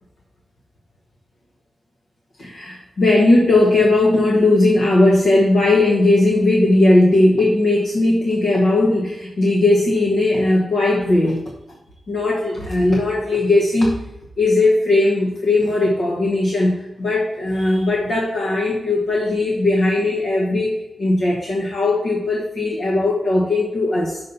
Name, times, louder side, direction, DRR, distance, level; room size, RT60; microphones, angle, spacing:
voice 1, 2.4-11.4 12.1-14.0 14.4-24.2, left 2 dB, 75° left, -2 dB, 1.2 m, -17 dB
6.2 x 5.7 x 4.0 m, 0.93 s
wide cardioid pair, 85°, 0 cm